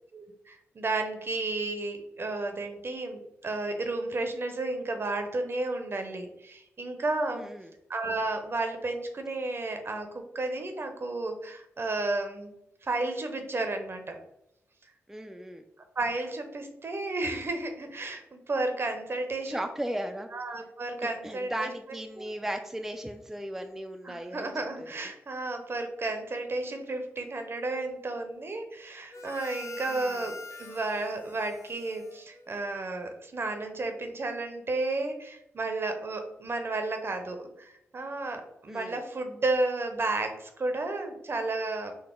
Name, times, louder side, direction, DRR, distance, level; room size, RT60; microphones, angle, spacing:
voice 1, 0.1-7.5 7.9-12.5 12.8-14.2 16.0-19.6 20.3-21.7 22.2-22.3 24.0-41.9, right 2 dB, 50° right, 6 dB, 0.7 m, -32 dB
voice 2, 7.3-7.7 15.1-15.6 19.4-20.3 21.0-24.5 24.8-24.9 29.9-30.2 38.7-39.0, right 1 dB, 5° right, 5 dB, 0.3 m, -36 dB
Harmonica, 29.1-32.9, left 3 dB, 65° left, 0.5 m, -46 dB
3.9 x 2.1 x 3.7 m, 0.82 s
cardioid pair, 50°, 5 cm